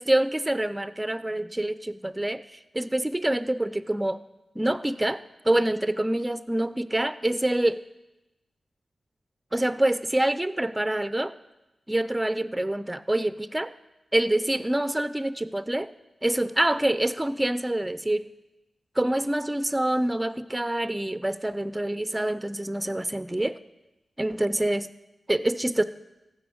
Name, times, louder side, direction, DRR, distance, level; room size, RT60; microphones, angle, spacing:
voice 1, 0.0-2.4 2.7-4.2 4.6-5.2 5.4-7.8 9.5-11.3 11.9-13.7 14.1-15.9 16.2-18.3 19.0-23.6 24.2-24.9 25.3-25.8, right 1 dB, 15° right, 13 dB, 0.6 m, -26 dB
14.5 x 5.7 x 7.1 m, 1.0 s
cardioid pair, 50°, 0 cm